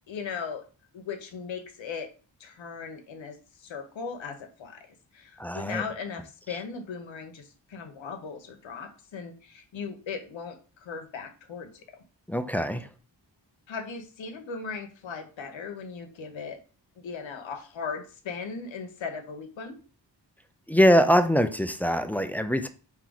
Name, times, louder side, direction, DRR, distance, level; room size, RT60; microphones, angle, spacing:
voice 1, 0.1-0.6 0.9-2.1 2.4-11.8 13.7-16.6 17.0-19.8, left 5 dB, 80° left, 0.9 m, -38 dB
voice 2, 5.4-5.8 6.5-6.6 12.3-12.9 20.7-22.7, equal, 5° left, 0.3 m, -23 dB
4.6 x 2.9 x 3.9 m
cardioid pair, 75°, 45 cm